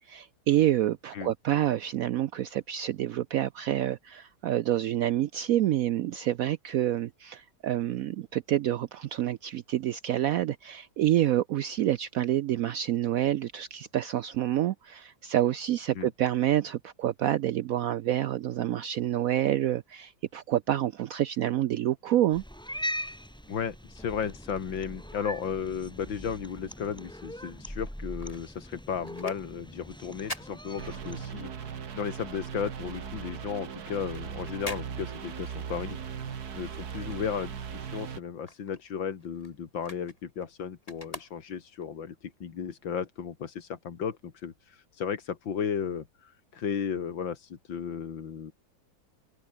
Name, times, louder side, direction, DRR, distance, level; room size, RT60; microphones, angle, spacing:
voice 1, 0.0-22.4, right 12 dB, 85° right, 0.7 m, -28 dB
Cat, 22.3-31.3, equal, ahead, 3.4 m, -41 dB
voice 2, 23.5-36.0 36.5-48.5, left 7 dB, 80° left, 2.6 m, -35 dB
sound 1, 27.9-31.5 31.8-37.8 38.1-41.9 42.4-42.5, left 1 dB, 20° left, 4.2 m, -46 dB
sound 2, 30.8-38.2, right 7 dB, 55° right, 1.9 m, -38 dB
omnidirectional pair, 2.1 m